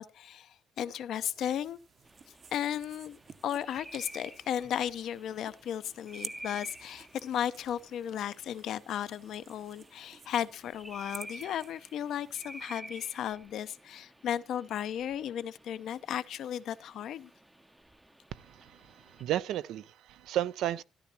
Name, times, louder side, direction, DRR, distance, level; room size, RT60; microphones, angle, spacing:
voice 1, 0.0-1.8 2.5-17.3, left 10 dB, 75° left, 0.6 m, -35 dB
sound 1, 1.1-12.7, right 5 dB, 45° right, 0.8 m, -53 dB
sound 2, 2.0-19.2, right 1 dB, 10° right, 0.5 m, -51 dB
voice 2, 18.3-20.8, right 12 dB, 85° right, 0.5 m, -34 dB
13.5 x 11.5 x 2.8 m
cardioid pair, 90°, 0 cm